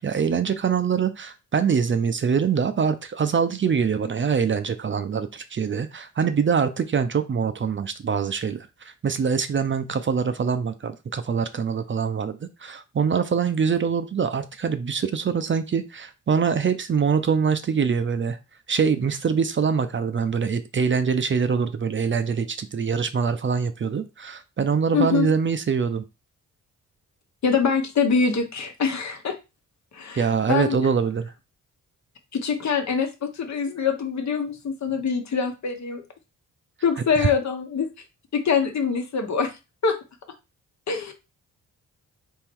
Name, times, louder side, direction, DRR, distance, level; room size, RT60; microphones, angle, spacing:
voice 1, 0.0-18.4 18.7-26.0 30.2-31.3 37.2-37.3, right 6 dB, 40° right, 10 dB, 0.6 m, -24 dB
voice 2, 24.9-25.3 27.4-29.3 29.9-30.8 32.3-36.0 36.8-37.9 38.3-39.5 39.8-40.0 40.9-41.1, left 5 dB, 60° left, 5 dB, 1.1 m, -24 dB
3.7 x 3.0 x 4.5 m, 0.26 s
cardioid pair, 85°, 32 cm